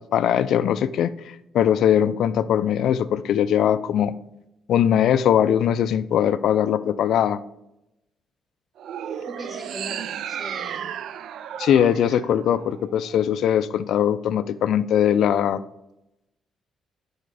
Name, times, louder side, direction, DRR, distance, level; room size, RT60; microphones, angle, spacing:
voice 1, 0.0-4.1 4.7-7.4 11.6-15.6, left 9 dB, 75° left, 13 dB, 0.3 m, -21 dB
sound 1, 8.8-13.1, right 9 dB, 75° right, 0.4 m, -34 dB
voice 2, 9.4-10.9, right 1 dB, 35° right, 1 dB, 2.3 m, -38 dB
9.0 x 4.2 x 4.8 m, 0.86 s
cardioid pair, 90°, 0 cm